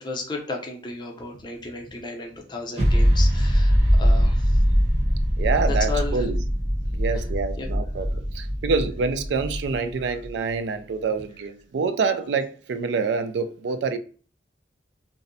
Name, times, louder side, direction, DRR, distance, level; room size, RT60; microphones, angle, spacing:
voice 1, 0.0-4.6 5.7-6.2 7.6-7.7, left 3 dB, 25° left, 0.5 m, -33 dB
sound 1, 2.8-10.3, equal, 35° right, 0.9 m, -22 dB
voice 2, 5.4-6.4 6.9-14.0, right 4 dB, 70° right, 0.3 m, -26 dB
2.6 x 2.0 x 2.6 m
head